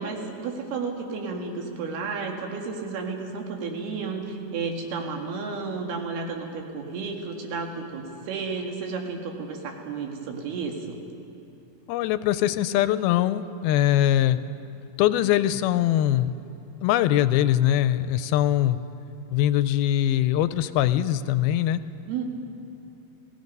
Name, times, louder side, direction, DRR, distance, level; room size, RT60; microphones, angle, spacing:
voice 1, 0.0-11.0 22.1-22.2, right 4 dB, 80° right, 2 dB, 3.9 m, -32 dB
voice 2, 11.9-14.4 15.0-16.3 16.8-18.8 19.3-21.8, left 12 dB, 80° left, 13 dB, 2.4 m, -22 dB
30.0 x 18.0 x 5.4 m, 3.0 s
omnidirectional pair, 4.4 m